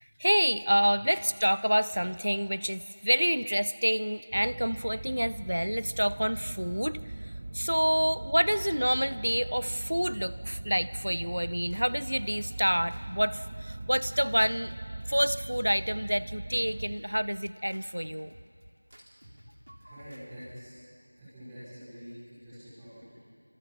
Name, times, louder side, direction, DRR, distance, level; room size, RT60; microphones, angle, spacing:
voice 1, 0.0-14.7 15.1-18.3, equal, 90° right, 16 dB, 0.7 m, -28 dB
sound 1, 4.3-17.0, right 2 dB, 25° right, 0.7 m, -40 dB
sound 2, 11.1-20.7, equal, 65° right, 2.9 m, -55 dB
voice 2, 19.8-20.8 21.2-23.1, equal, 5° right, -12 dB, 4.9 m, -46 dB
28.0 x 26.0 x 5.8 m, 2.4 s
figure-of-eight pair, 175°, 0 cm